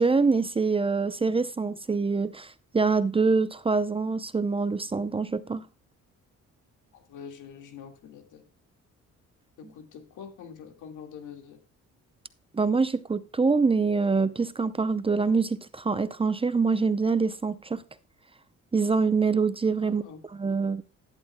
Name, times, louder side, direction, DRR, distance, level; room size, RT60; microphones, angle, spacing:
voice 1, 0.0-5.7 12.5-17.8 18.7-20.0 20.4-20.8, right 4 dB, 20° right, 0.6 m, -25 dB
voice 2, 6.9-8.4 9.6-11.6 19.8-20.2, left 7 dB, 85° left, 2.0 m, -45 dB
12.5 x 11.0 x 2.2 m
cardioid pair, 90°, 30 cm